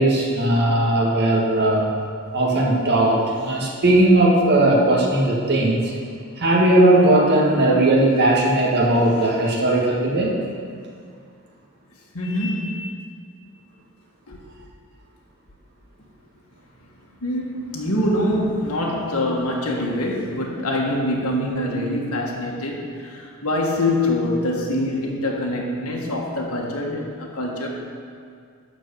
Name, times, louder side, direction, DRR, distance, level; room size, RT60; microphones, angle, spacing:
voice 1, 0.0-1.9 2.3-5.9 6.4-10.3, right 1 dB, 50° right, -3 dB, 1.8 m, -18 dB
voice 2, 12.1-12.9 14.3-14.4 17.2-27.7, left 1 dB, 85° left, -2 dB, 1.6 m, -24 dB
12.0 x 4.6 x 7.0 m, 2.2 s
head